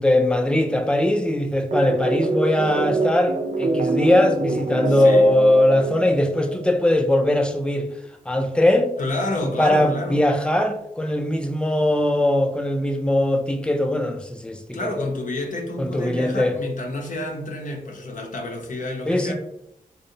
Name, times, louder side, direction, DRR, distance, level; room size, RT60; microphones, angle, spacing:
voice 1, 0.0-7.9 8.3-8.9 9.4-15.1 15.8-16.5 19.1-19.3, left 1 dB, 5° left, 0.4 m, -20 dB
sound 1, 1.7-6.9, right 3 dB, 60° right, 0.4 m, -25 dB
voice 2, 4.9-5.3 9.0-10.2 14.7-19.3, left 2 dB, 65° left, 0.5 m, -29 dB
2.5 x 2.0 x 2.7 m
cardioid pair, 50°, 15 cm